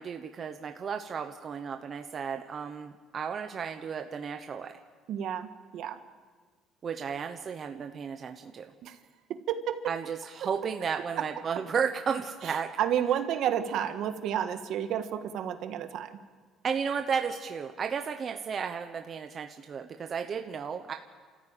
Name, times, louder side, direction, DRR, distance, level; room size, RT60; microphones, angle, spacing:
voice 1, 0.0-4.7 6.8-8.7 9.9-12.7 16.6-20.9, right 6 dB, 35° right, 5 dB, 1.0 m, -33 dB
voice 2, 5.1-6.0 8.8-9.0 9.3-9.9 11.1-11.3 12.4-16.2, right 10 dB, 60° right, 8 dB, 1.6 m, -31 dB
29.5 x 14.0 x 9.1 m, 1.6 s
cardioid pair, 150°, 0 cm